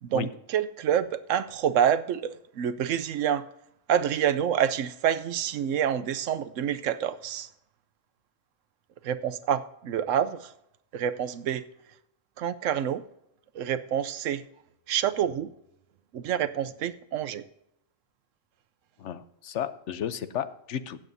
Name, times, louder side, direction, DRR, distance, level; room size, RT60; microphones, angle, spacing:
voice 1, 0.0-3.4 3.9-7.5 9.0-10.5 10.9-11.6 12.4-13.0 13.5-14.4 14.9-15.5 16.1-17.4, right 9 dB, 85° right, 1.0 m, -27 dB
voice 2, 19.0-21.0, left 9 dB, 70° left, 1.0 m, -33 dB
16.0 x 7.6 x 2.7 m
omnidirectional pair, 1.3 m